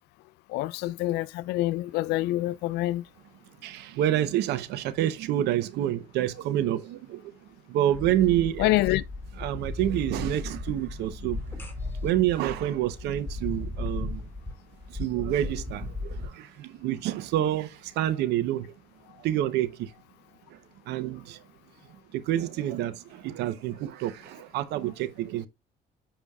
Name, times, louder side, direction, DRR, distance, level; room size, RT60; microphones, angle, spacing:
voice 1, 0.5-3.0 8.6-9.0, left 17 dB, 85° left, 0.4 m, -26 dB
voice 2, 3.6-7.3 7.7-8.8 9.4-11.7 12.0-14.3 14.9-18.7 19.2-19.9 20.5-20.6 20.9-21.4 22.1-25.5, right 12 dB, 85° right, 0.8 m, -28 dB
sound 1, 7.9-16.3, left 2 dB, 15° left, 2.0 m, -36 dB
8.7 x 5.2 x 2.3 m
cardioid pair, 110°, 17 cm